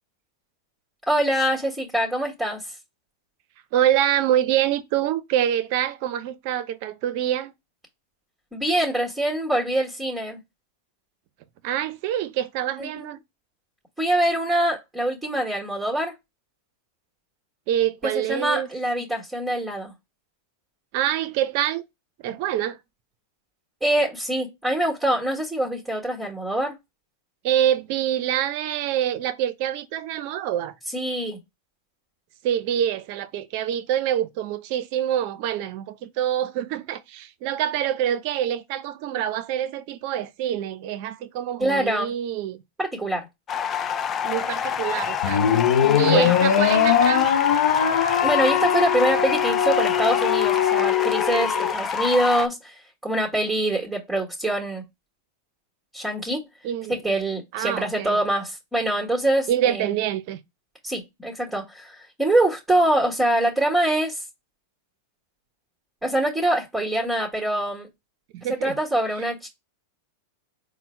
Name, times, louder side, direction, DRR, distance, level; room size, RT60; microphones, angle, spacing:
voice 1, 1.1-2.6 8.5-10.4 12.8-12.9 14.0-16.1 18.0-19.9 23.8-26.7 30.9-31.4 41.6-42.1 42.8-43.3 45.8-46.3 48.2-52.7 53.0-54.8 55.9-56.5 56.9-59.9 60.8-64.2 66.0-67.9 68.5-69.5, right 1 dB, 5° right, 1.6 m, -24 dB
voice 2, 3.7-7.5 11.6-13.2 17.7-18.7 20.9-21.8 22.2-22.8 27.4-30.8 32.4-42.6 44.2-45.6 45.9-47.4 56.6-57.0 57.5-58.2 59.5-60.4 68.3-68.8 69.2-69.3, right 11 dB, 55° right, 0.6 m, -26 dB
sound 1, 43.5-52.5, left 7 dB, 30° left, 0.4 m, -27 dB
sound 2, 45.2-51.7, left 9 dB, 75° left, 0.6 m, -21 dB
4.3 x 2.1 x 4.4 m
hypercardioid pair, 115°, 0 cm